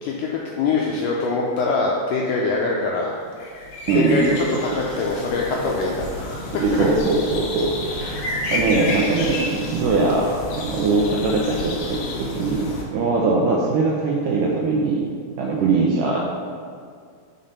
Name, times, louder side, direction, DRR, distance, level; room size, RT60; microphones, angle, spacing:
voice 1, 0.5-3.3 3.9-6.8 8.0-8.2, left 3 dB, 85° left, -2 dB, 1.9 m, -24 dB
sound 1, 3.3-12.8, left 2 dB, 65° left, 2.2 m, -30 dB
voice 2, 3.9-4.6 6.6-7.7 8.5-16.2, right 3 dB, 80° right, -2 dB, 1.9 m, -21 dB
5.8 x 5.1 x 5.4 m, 2.1 s
omnidirectional pair, 4.4 m